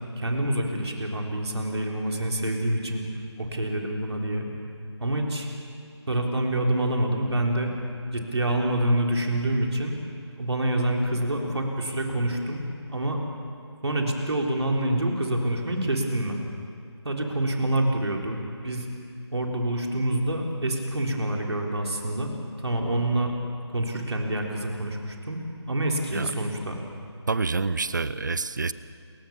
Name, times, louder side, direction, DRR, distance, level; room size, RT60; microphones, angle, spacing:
voice 1, 0.2-3.0 3.4-4.5 5.0-5.5 6.1-7.7 8.1-10.0 10.4-12.6 12.9-13.2 13.8-16.5 17.0-18.9 19.3-22.3 22.6-23.3 23.7-25.4 25.7-26.8, right 1 dB, 65° right, 1 dB, 3.7 m, -26 dB
voice 2, 27.3-28.7, right 4 dB, 40° right, 16 dB, 0.6 m, -27 dB
29.0 x 14.5 x 7.0 m, 2.3 s
figure-of-eight pair, 165°, 15 cm